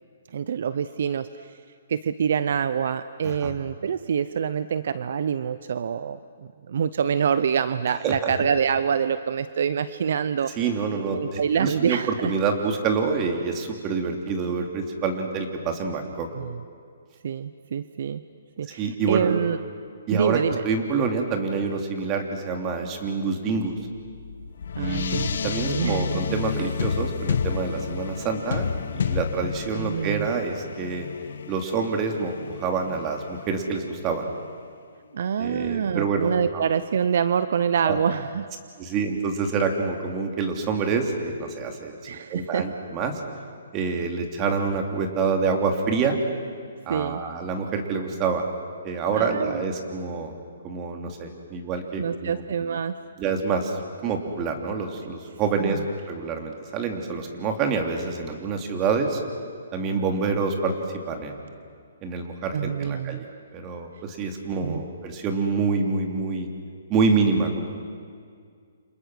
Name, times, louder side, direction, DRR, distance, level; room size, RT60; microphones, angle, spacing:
voice 1, 0.3-1.5 1.9-6.2 6.7-10.5 11.1-12.3 16.3-16.6 17.2-18.2 18.6-19.6 20.1-20.6 24.8-26.1 29.8-30.3 35.1-38.5 42.0-42.7 46.9-47.2 49.1-49.6 52.0-53.0 55.6-55.8 62.5-63.2 64.6-64.8, right 7 dB, 60° right, 13 dB, 0.7 m, -26 dB
voice 2, 8.0-8.4 10.6-16.3 18.8-19.3 20.1-23.8 24.8-31.1 31.5-34.3 35.4-36.6 37.8-38.0 38.8-43.2 43.7-46.2 46.9-48.4 48.8-50.3 50.6-52.4 53.2-55.8 56.1-59.2 59.7-60.7 61.1-61.4 62.0-66.5 66.9-67.7, right 4 dB, 25° right, 3 dB, 2.9 m, -27 dB
sound 1, 23.9-34.5, left 6 dB, 70° left, 1.3 m, -31 dB
29.5 x 26.5 x 6.3 m, 2.1 s
hypercardioid pair, 155°, 0 cm